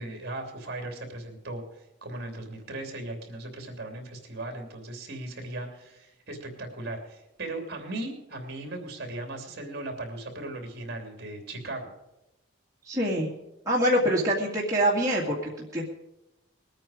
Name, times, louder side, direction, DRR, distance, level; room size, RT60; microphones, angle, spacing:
voice 1, 0.0-11.9, right 2 dB, 50° right, 4 dB, 3.0 m, -38 dB
voice 2, 12.9-13.3 13.7-15.8, equal, 15° right, -4 dB, 2.1 m, -25 dB
21.0 x 9.0 x 5.0 m, 0.92 s
head